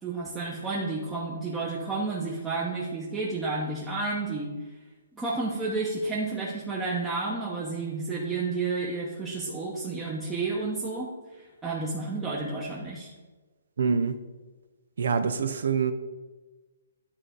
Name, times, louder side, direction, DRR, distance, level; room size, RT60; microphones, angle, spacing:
voice 1, 0.0-4.5 5.1-13.1, right 3 dB, 10° right, -5 dB, 0.8 m, -31 dB
voice 2, 13.8-14.2 15.0-15.9, right 5 dB, 70° right, 11 dB, 0.4 m, -25 dB
9.9 x 4.0 x 3.8 m, 1.3 s
hypercardioid pair, 155°, 0 cm